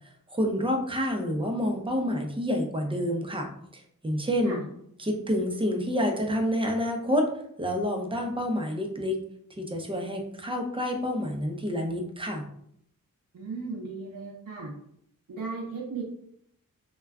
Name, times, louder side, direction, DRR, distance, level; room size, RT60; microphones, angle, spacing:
voice 1, 0.3-3.5 3.7-4.6 5.0-7.3 7.6-9.2 9.6-12.5, equal, 15° right, 3 dB, 0.6 m, -28 dB
voice 2, 13.3-14.7 15.3-16.0, right 4 dB, 60° right, -3 dB, 0.6 m, -36 dB
2.3 x 2.2 x 3.4 m, 0.71 s
cardioid pair, 65°, 35 cm